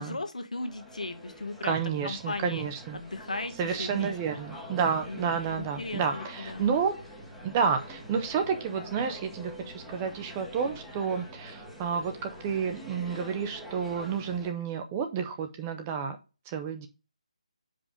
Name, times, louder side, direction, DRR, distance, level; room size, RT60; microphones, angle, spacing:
voice 1, 0.0-2.6 2.9-4.1 5.1-6.6, left 2 dB, 90° left, 7 dB, 1.4 m, -37 dB
sound 1, 0.6-14.5, equal, ahead, 0.9 m, -45 dB
voice 2, 1.6-3.0 3.6-7.0 7.4-16.2 16.5-16.9, right 6 dB, 15° right, 7 dB, 0.5 m, -30 dB
5.7 x 5.0 x 5.0 m, 0.30 s
figure-of-eight pair, 170°, 4 cm